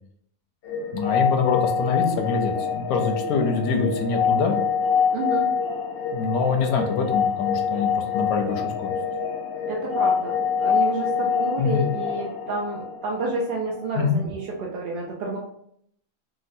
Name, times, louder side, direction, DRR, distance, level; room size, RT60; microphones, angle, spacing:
sound 1, 0.6-13.4, left 6 dB, 65° left, 0.6 m, -25 dB
voice 1, 0.9-4.6 6.1-8.9 11.6-11.9 13.9-14.2, left 5 dB, 85° left, 4 dB, 1.1 m, -24 dB
voice 2, 5.1-5.5 9.7-15.4, right 3 dB, 70° right, -1 dB, 0.5 m, -30 dB
3.8 x 2.1 x 2.6 m, 0.71 s
omnidirectional pair, 1.5 m